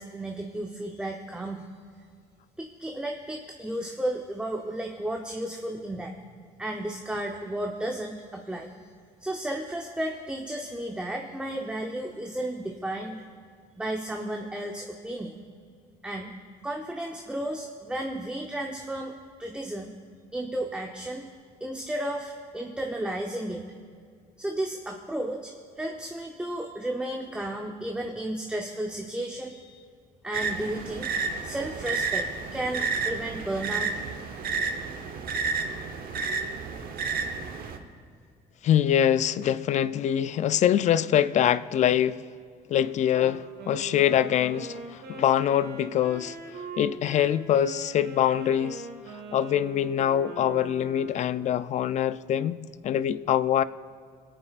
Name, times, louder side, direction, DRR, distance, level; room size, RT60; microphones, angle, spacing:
voice 1, 0.0-1.7 2.6-6.2 6.6-8.7 9.2-13.2 13.8-15.3 16.0-16.3 16.6-19.9 20.3-21.3 21.6-23.7 24.4-29.8 30.2-31.1 31.4-34.5, right 1 dB, 5° right, 0.7 m, -33 dB
sound 1, 30.3-37.8, right 4 dB, 60° right, 0.9 m, -31 dB
voice 2, 38.6-42.2 42.7-46.4 46.8-48.9 49.3-52.6 52.8-53.6, left 10 dB, 45° left, 0.4 m, -24 dB
Wind instrument woodwind instrument, 43.1-51.4, right 4 dB, 75° right, 1.5 m, -42 dB
25.5 x 8.8 x 2.4 m
cardioid pair, 110°, 17 cm